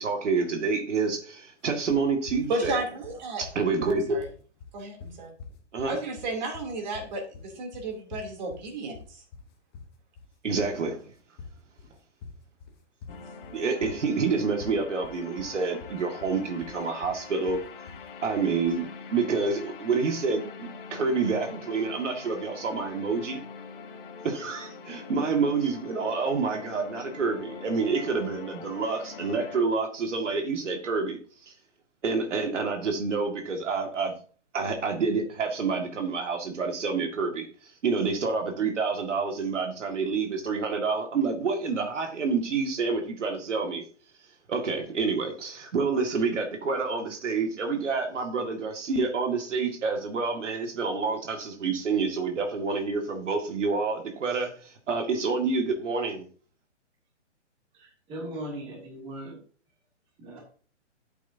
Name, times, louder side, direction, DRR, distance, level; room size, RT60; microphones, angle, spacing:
voice 1, 0.0-2.8 3.4-4.2 5.7-6.0 10.4-11.1 13.5-17.6 18.2-23.4 24.2-31.5 32.0-34.1 34.5-43.8 44.5-56.3, right 4 dB, 80° right, 2.1 m, -28 dB
sound 1, 1.9-18.9, left 5 dB, 20° left, 1.2 m, -46 dB
voice 2, 2.5-3.4 3.8-4.3 4.7-5.3 5.9-9.2, right 2 dB, 35° right, 3.1 m, -33 dB
sound 2, 13.1-29.6, left 5 dB, 50° left, 1.8 m, -43 dB
voice 3, 57.8-59.4 60.2-60.4, right 1 dB, 15° right, 2.5 m, -38 dB
11.5 x 8.3 x 2.8 m
hypercardioid pair, 165°, 36 cm